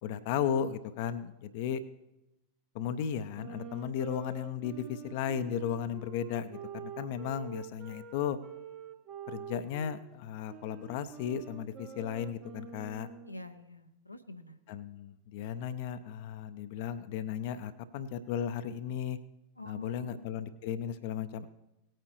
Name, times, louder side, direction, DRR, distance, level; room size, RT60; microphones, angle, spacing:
voice 1, 0.0-1.8 2.7-8.4 9.3-13.1 14.7-19.2 19.7-21.5, left 8 dB, 50° left, 12 dB, 0.6 m, -35 dB
sound 1, 3.3-10.1 10.5-13.5, right 7 dB, 35° right, 1.0 m, -47 dB
voice 2, 13.3-14.6 19.6-20.2, left 2 dB, 85° left, 7 dB, 0.7 m, -47 dB
18.5 x 9.0 x 3.1 m, 0.92 s
figure-of-eight pair, 90°, 0 cm